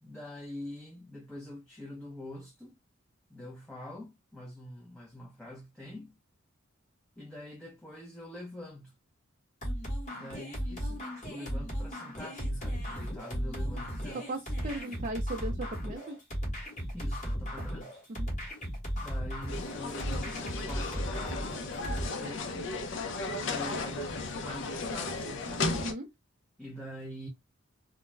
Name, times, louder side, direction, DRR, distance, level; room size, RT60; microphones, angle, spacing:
voice 1, 0.0-2.8 3.3-6.1 7.2-8.9 10.1-14.2 16.9-18.0 18.9-22.8 23.2-25.7 26.6-27.3, left 1 dB, 5° left, 0.6 m, -45 dB
sound 1, 9.6-22.1, equal, 35° left, 1.2 m, -36 dB
voice 2, 14.3-16.2 18.1-18.3 25.7-26.1, right 1 dB, 40° right, 0.4 m, -37 dB
sound 2, 19.5-25.9, left 3 dB, 60° left, 0.6 m, -35 dB
2.4 x 2.1 x 3.2 m
head